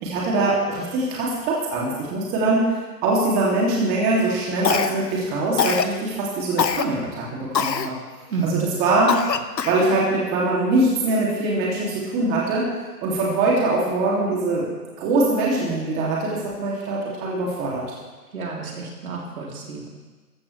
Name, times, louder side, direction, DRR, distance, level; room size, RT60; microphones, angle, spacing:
voice 1, 0.0-2.6 3.0-7.9 8.4-9.2 9.6-12.7 13.0-14.7 15.0-17.8, right 2 dB, 20° right, -5 dB, 2.6 m, -22 dB
Cough, 4.6-5.2 5.6-5.9 6.6-6.8 7.5-7.9 8.4-8.5 9.1-9.9, left 7 dB, 85° left, 1.0 m, -23 dB
voice 2, 8.3-8.7 18.3-19.9, right 5 dB, 60° right, -2 dB, 3.2 m, -29 dB
14.5 x 13.5 x 3.3 m, 1.3 s
figure-of-eight pair, 140°, 49 cm